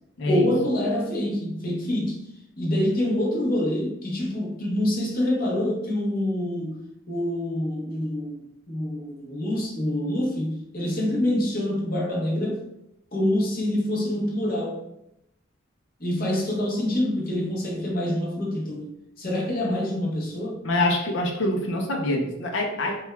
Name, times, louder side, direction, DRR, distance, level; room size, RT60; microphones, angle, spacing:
voice 1, 0.3-2.3 2.6-6.8 7.1-8.4 8.7-12.6 13.1-14.8 16.0-18.9 19.2-20.6, left 1 dB, 45° left, -2 dB, 0.9 m, -26 dB
voice 2, 20.6-23.0, left 1 dB, 65° left, 0 dB, 0.6 m, -25 dB
6.0 x 2.3 x 2.2 m, 0.82 s
head